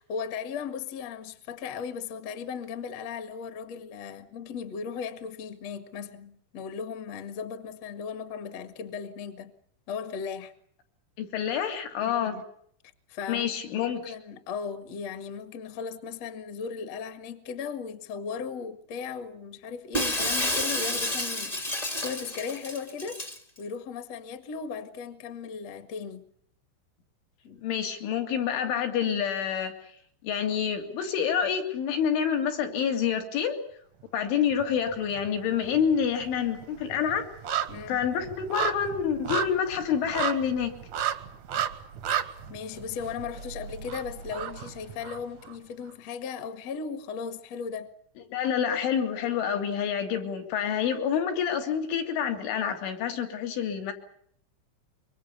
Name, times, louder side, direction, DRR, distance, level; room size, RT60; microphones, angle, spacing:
voice 1, 0.0-9.5 9.9-10.5 12.2-12.4 13.1-13.4 13.8-23.3 23.6-26.3 27.4-27.6 37.7-38.0 42.5-47.9, left 6 dB, 50° left, 2.1 m, -37 dB
voice 2, 11.2-12.4 13.3-14.1 27.6-29.7 30.2-33.6 34.1-37.3 37.9-40.7 48.3-53.9, left 8 dB, 80° left, 5.4 m, -27 dB
Shatter, 19.9-23.4, left 1 dB, 20° left, 1.0 m, -30 dB
sound 1, 34.5-35.3 35.6-45.5 45.9-46.0, right 9 dB, 70° right, 1.7 m, -34 dB
25.5 x 24.5 x 6.9 m
omnidirectional pair, 5.4 m